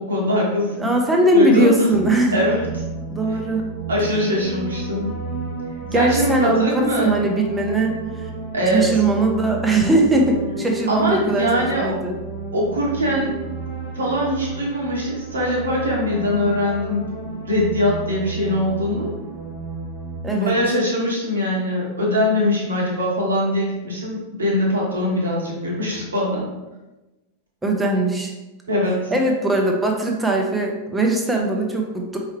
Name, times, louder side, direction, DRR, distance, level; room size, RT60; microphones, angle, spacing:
voice 1, 0.0-0.9 1.3-1.9 2.3-2.7 3.3-3.4 3.9-5.1 5.9-7.1 8.5-9.0 10.9-12.0 12.5-13.3 13.9-17.1 17.4-19.1 20.3-26.4 28.7-29.1, equal, 70° right, -3 dB, 1.2 m, -22 dB
voice 2, 0.8-2.4 3.1-3.7 5.9-8.0 8.7-12.1 20.2-20.6 27.6-28.3 29.1-32.2, right 2 dB, 10° right, 1 dB, 0.7 m, -20 dB
sound 1, 1.9-20.2, right 3 dB, 40° right, 1.1 m, -32 dB
4.5 x 3.2 x 3.2 m, 1.1 s
figure-of-eight pair, 90°, 0 cm